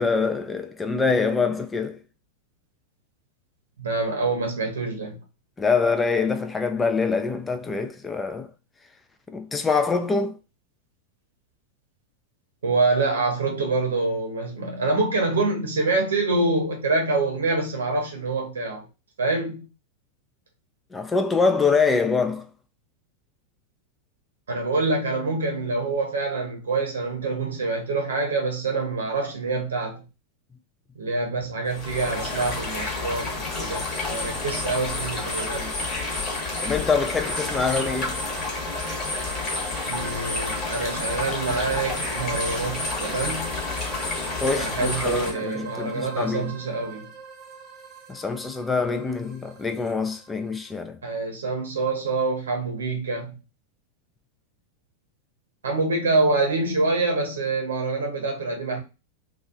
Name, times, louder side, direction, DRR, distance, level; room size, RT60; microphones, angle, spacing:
voice 1, 0.0-2.0 5.6-8.5 9.3-10.4 20.9-22.5 36.6-38.2 44.4-46.5 48.1-51.0, left 4 dB, 15° left, 0.3 m, -24 dB
voice 2, 3.8-5.2 12.6-18.8 19.2-19.6 24.5-30.0 31.0-35.8 39.9-43.6 44.5-47.1 51.0-53.3 55.6-58.8, right 3 dB, 70° right, 0.7 m, -26 dB
sound 1, 31.7-45.3, left 3 dB, 30° left, 1.1 m, -29 dB
sound 2, 37.2-50.8, right 6 dB, 30° right, 0.7 m, -43 dB
2.9 x 2.3 x 2.2 m
figure-of-eight pair, 90°, 0 cm